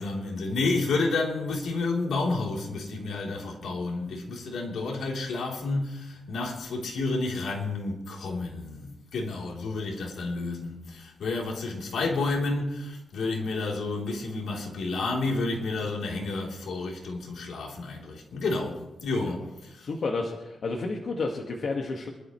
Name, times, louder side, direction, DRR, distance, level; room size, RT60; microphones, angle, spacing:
voice 1, 0.0-19.5 19.8-19.9, left 3 dB, 75° left, 3.5 m, -30 dB
voice 2, 19.8-22.1, left 3 dB, 50° left, 1.8 m, -31 dB
27.0 x 12.0 x 3.2 m
wide cardioid pair, 135°, 0 cm